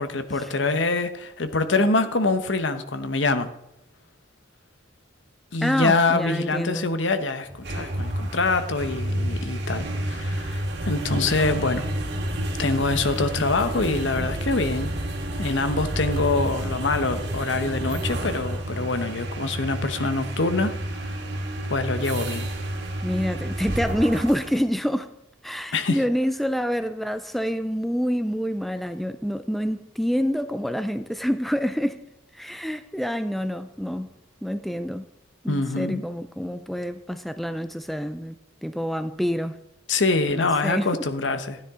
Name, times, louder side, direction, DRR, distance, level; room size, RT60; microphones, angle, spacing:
voice 1, 0.0-3.5 5.5-11.9 12.6-14.9 15.4-21.2 21.7-22.5 25.7-26.0 35.5-36.0 39.9-41.6, left 3 dB, 65° left, 1.0 m, -25 dB
voice 2, 5.6-6.9 23.0-25.1 25.4-32.0 32.3-34.1 34.4-35.1 35.4-38.4 38.6-39.6 40.3-40.9, equal, ahead, 0.4 m, -27 dB
sound 1, 7.5-24.6, right 1 dB, 60° right, 2.1 m, -30 dB
13.0 x 9.9 x 3.7 m
head